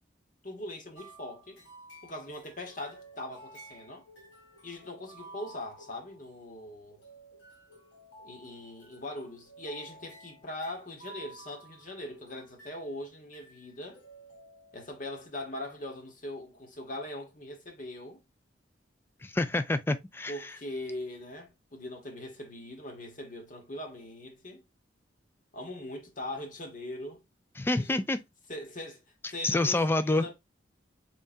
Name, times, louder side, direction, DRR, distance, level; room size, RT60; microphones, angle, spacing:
voice 1, 0.4-1.6 2.0-4.0 4.6-7.0 8.2-14.0 14.7-18.2 20.3-24.6 25.5-27.2 27.8-28.0 28.5-29.0 29.3-30.3, left 1 dB, 45° left, 1.1 m, -41 dB
sound 1, 1.0-6.6 6.9-12.9 13.3-13.7 13.9-15.1, right 2 dB, 90° left, 1.4 m, -53 dB
voice 2, 19.2-20.5 27.6-28.2 29.4-30.3, left 2 dB, 10° left, 0.3 m, -27 dB
3.7 x 3.4 x 2.7 m
head